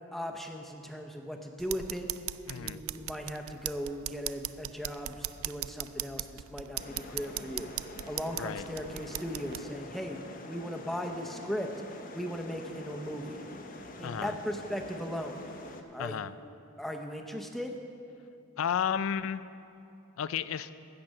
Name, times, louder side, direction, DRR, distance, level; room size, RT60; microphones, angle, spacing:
voice 1, 0.1-2.1 2.5-7.7 8.1-10.2 10.5-11.7 12.1-13.4 14.0-15.4 15.9-16.3 16.8-17.8, equal, ahead, 3 dB, 0.7 m, -38 dB
sound 1, 1.6-9.6, right 14 dB, 80° right, 0.3 m, -39 dB
voice 2, 2.5-2.8 8.4-8.6 14.0-14.4 16.0-16.3 18.6-19.4 20.2-20.7, left 8 dB, 80° left, 15 dB, 0.4 m, -32 dB
sound 2, 6.8-15.8, left 1 dB, 40° left, 0.7 m, -46 dB
15.5 x 5.9 x 6.4 m, 2.7 s
head